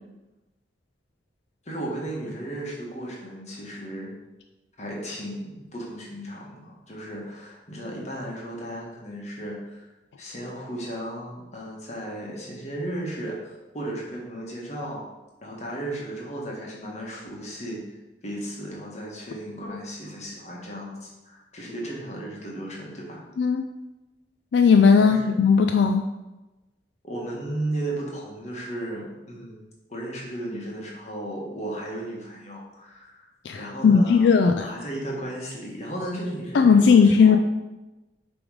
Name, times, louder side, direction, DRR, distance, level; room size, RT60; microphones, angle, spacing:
voice 1, 1.6-4.1 4.8-9.9 10.2-15.0 15.4-18.0 18.2-23.2 25.0-25.3 27.0-33.3 33.5-34.2 34.6-37.4, right 1 dB, 40° left, -3 dB, 1.5 m, -35 dB
voice 2, 24.5-26.0 33.4-34.6 36.5-37.4, left 5 dB, 75° left, 5 dB, 0.4 m, -17 dB
7.1 x 3.5 x 4.9 m, 1.0 s
head